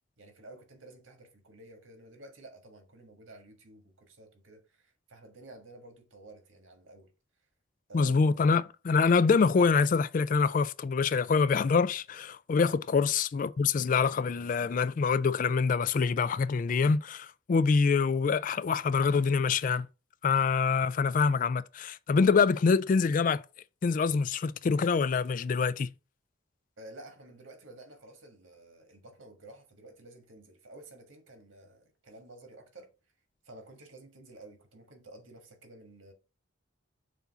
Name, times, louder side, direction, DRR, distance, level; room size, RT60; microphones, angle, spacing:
voice 1, 0.2-7.1 7.9-8.4 12.6-12.8 26.8-32.9 33.4-36.1, right 2 dB, 90° right, 1.6 m, -51 dB
voice 2, 7.9-19.9 20.2-23.4 23.8-25.9, left 5 dB, 40° left, 0.3 m, -25 dB
7.0 x 2.7 x 5.5 m
head